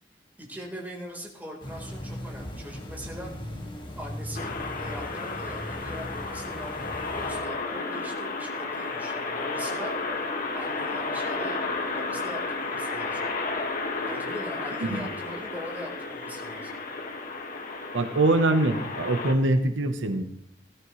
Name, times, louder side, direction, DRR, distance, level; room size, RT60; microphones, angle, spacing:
voice 1, 0.4-13.3 14.0-16.8, equal, 10° right, -2 dB, 4.0 m, -41 dB
sound 1, 1.6-7.4, left 1 dB, 25° left, 2.1 m, -38 dB
sound 2, 4.3-19.3, left 3 dB, 50° left, 1.8 m, -32 dB
voice 2, 17.9-20.2, right 2 dB, 85° right, 8 dB, 1.1 m, -23 dB
17.5 x 12.5 x 3.2 m, 0.73 s
head